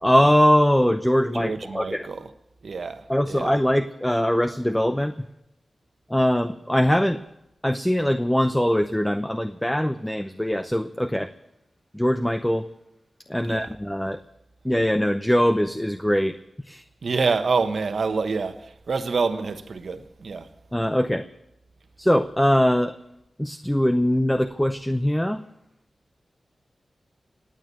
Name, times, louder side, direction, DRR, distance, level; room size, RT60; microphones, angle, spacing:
voice 1, 0.0-2.1 3.1-5.3 6.1-7.2 7.6-11.3 11.9-12.7 13.3-14.2 14.6-16.4 16.6-16.8 20.7-21.2 22.0-22.9 23.4-25.4, equal, 5° left, 0.7 m, -22 dB
voice 2, 1.4-2.2 2.6-3.5 13.4-13.7 17.0-18.6 18.9-20.5, right 4 dB, 70° right, 1.1 m, -26 dB
18.0 x 8.9 x 8.3 m
cardioid pair, 70°, 0 cm